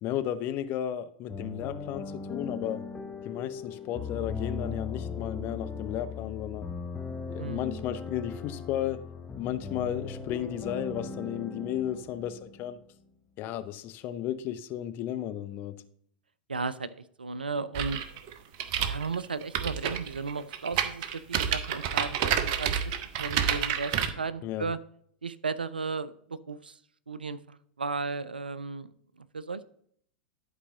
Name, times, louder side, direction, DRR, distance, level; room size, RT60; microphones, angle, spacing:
voice 1, 0.0-2.8 3.2-6.7 7.3-9.1 9.4-12.8 13.4-15.8 24.4-24.6, left 11 dB, 40° left, 11 dB, 0.7 m, -34 dB
sound 1, 1.3-13.0, left 5 dB, 15° left, 1.2 m, -38 dB
voice 2, 7.4-7.8 10.9-11.1 16.5-18.0 18.9-24.8 25.2-26.8 27.1-28.9 29.3-29.6, right 4 dB, 85° right, 17 dB, 0.5 m, -35 dB
sound 2, 17.7-24.1, right 8 dB, 50° right, 0.9 m, -29 dB
11.0 x 4.9 x 3.7 m, 0.65 s
figure-of-eight pair, 95°, 5 cm